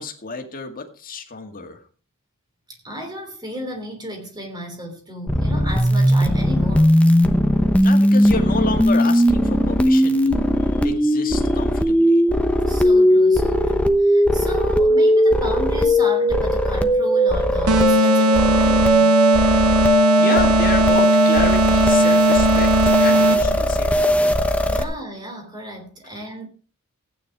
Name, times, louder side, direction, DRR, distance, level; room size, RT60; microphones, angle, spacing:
voice 1, 0.0-1.8 7.8-10.5 10.8-12.2 19.4-19.5 20.2-22.7 23.0-24.2, left 3 dB, 40° left, 2.1 m, -30 dB
voice 2, 2.7-7.0 12.7-19.2 24.6-26.5, right 1 dB, 20° right, 3.3 m, -34 dB
sound 1, 5.3-24.8, equal, 5° left, 1.0 m, -18 dB
sound 2, 17.7-23.6, right 2 dB, 75° right, 1.0 m, -18 dB
15.0 x 9.5 x 4.7 m
head